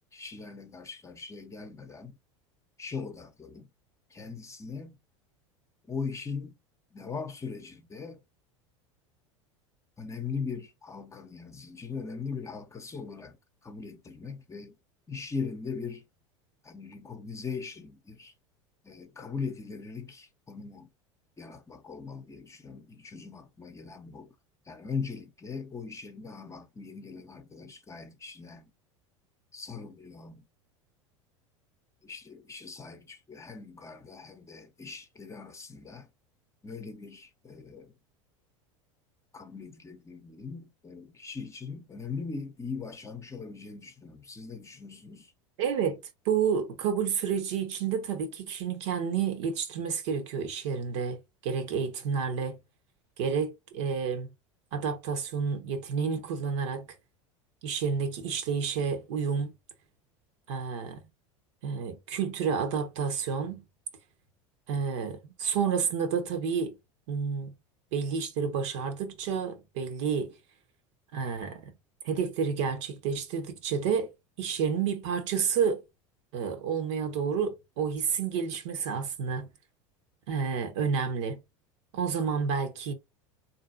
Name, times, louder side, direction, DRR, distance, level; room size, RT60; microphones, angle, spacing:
voice 1, 0.1-2.2 2.8-3.7 4.1-5.0 5.9-6.5 6.9-8.2 10.0-13.4 13.6-14.8 15.1-16.0 16.6-18.3 18.8-20.9 21.4-24.3 24.7-28.7 29.5-30.4 32.0-36.1 36.6-37.9 39.3-45.3, left 5 dB, 20° left, 0.8 m, -40 dB
voice 2, 45.6-46.0 46.2-52.6 53.2-54.3 54.7-56.9 57.6-59.5 60.5-61.1 61.6-63.6 64.7-66.7 67.1-67.5 67.9-70.3 71.1-71.7 72.0-74.1 74.4-75.8 76.3-79.5 80.3-81.4 81.9-82.9, right 6 dB, 65° right, 1.0 m, -30 dB
3.9 x 2.7 x 2.5 m
hypercardioid pair, 85°, 16 cm